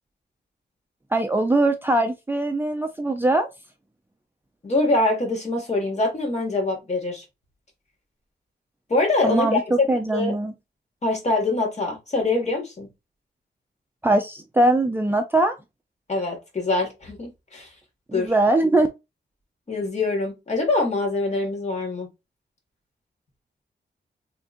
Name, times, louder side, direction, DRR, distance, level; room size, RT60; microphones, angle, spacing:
voice 1, 1.1-3.5 9.2-9.6 9.9-10.5 14.0-15.5 18.1-18.9, right 2 dB, 10° right, 0.5 m, -21 dB
voice 2, 4.6-7.2 8.9-10.3 11.0-12.9 16.1-17.7 18.1-18.3 19.7-22.1, left 2 dB, 40° left, 1.9 m, -24 dB
3.8 x 3.5 x 2.6 m
wide cardioid pair, 135°, 18 cm